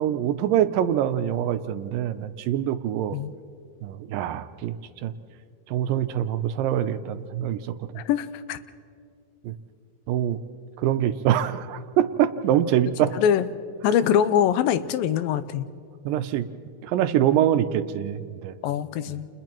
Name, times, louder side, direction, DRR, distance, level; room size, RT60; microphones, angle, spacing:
voice 1, 0.0-3.2 3.8-4.8 5.0-5.1 5.7-7.6 9.4-9.5 10.1-10.4 10.8-13.1 16.1-16.5 16.8-18.6, right 11 dB, 80° right, 10 dB, 2.2 m, -24 dB
voice 2, 8.0-8.6 13.1-13.5 13.8-15.7 18.6-19.3, left 9 dB, 85° left, 13 dB, 2.4 m, -23 dB
29.5 x 29.5 x 3.0 m, 2.3 s
omnidirectional pair, 4.0 m